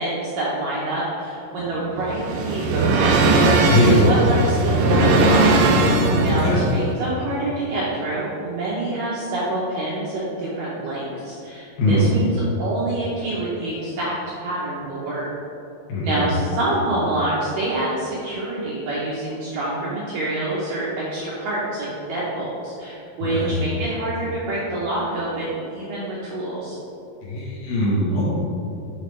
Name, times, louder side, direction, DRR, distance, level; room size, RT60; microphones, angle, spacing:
voice 1, 0.0-5.5 6.2-15.3 16.0-26.8, right 2 dB, 75° right, -7 dB, 2.1 m, -26 dB
sound 1, 1.6-6.7, right 2 dB, 90° right, 3.0 m, -18 dB
voice 2, 3.7-4.0 6.3-6.6 11.8-12.1 15.9-16.2 23.2-23.6 27.3-28.3, left 1 dB, 70° left, -7 dB, 2.6 m, -20 dB
8.9 x 5.2 x 3.2 m, 2.8 s
omnidirectional pair, 5.0 m